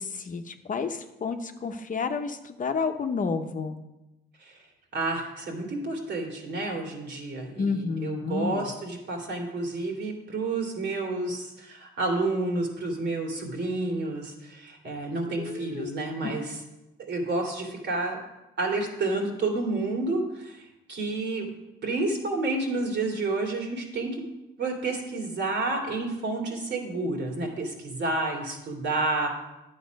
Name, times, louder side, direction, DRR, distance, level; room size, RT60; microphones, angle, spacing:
voice 1, 0.0-3.8 7.6-8.6 15.4-15.9 16.2-16.3, left 5 dB, 40° left, 6 dB, 0.8 m, -30 dB
voice 2, 4.9-16.5 17.1-18.2 18.6-20.6 20.9-21.5 21.8-24.1 24.6-29.3, right 2 dB, 65° right, 1 dB, 2.7 m, -30 dB
10.0 x 7.3 x 5.3 m, 0.98 s
cardioid pair, 90°, 20 cm